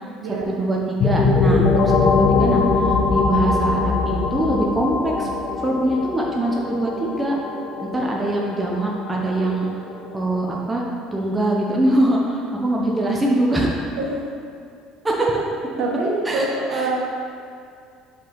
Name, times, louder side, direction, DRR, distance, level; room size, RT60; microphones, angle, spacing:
voice 1, 0.5-5.3 5.6-7.4 7.8-9.8 10.1-10.8 11.1-13.7 15.0-15.4 16.3-16.5 16.7-16.9, right 1 dB, 10° right, -3 dB, 0.6 m, -23 dB
sound 1, 1.0-10.6, left 4 dB, 45° left, 0.4 m, -22 dB
voice 2, 14.0-14.3 15.8-17.0, right 2 dB, 65° right, -3 dB, 1.3 m, -25 dB
5.2 x 5.1 x 3.8 m, 2.4 s
cardioid pair, 140°, 0 cm